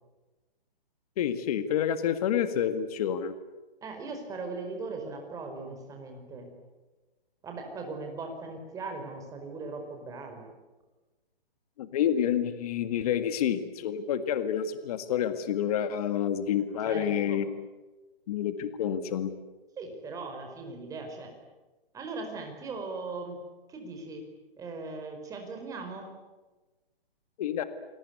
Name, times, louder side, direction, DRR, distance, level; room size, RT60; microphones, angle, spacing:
voice 1, 1.2-3.3 11.8-17.7 18.3-19.3 27.4-27.6, left 9 dB, 40° left, 10 dB, 1.8 m, -28 dB
voice 2, 3.8-6.5 7.4-10.4 16.8-17.4 19.8-21.3 21.9-23.4 23.7-24.2 24.6-26.1, right 3 dB, 10° right, 4 dB, 4.9 m, -39 dB
28.5 x 22.0 x 9.6 m, 1.2 s
hypercardioid pair, 155°, 30 cm